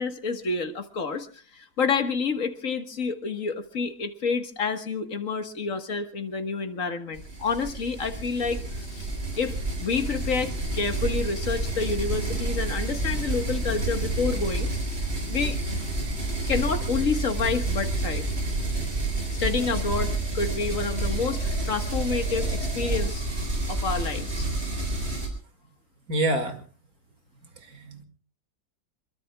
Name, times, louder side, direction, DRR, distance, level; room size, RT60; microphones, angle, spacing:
voice 1, 0.0-9.1 9.4-9.5 9.8-14.7 15.3-15.6 16.5-18.2 19.3-23.3 23.7-24.5, left 5 dB, 45° left, 7 dB, 1.9 m, -29 dB
sound 1, 7.1-25.3, right 2 dB, 35° right, 5.4 m, -29 dB
voice 2, 26.1-26.6 27.7-28.0, right 1 dB, 55° right, 7 dB, 2.7 m, -26 dB
26.5 x 22.5 x 2.4 m, 0.38 s
omnidirectional pair, 1.9 m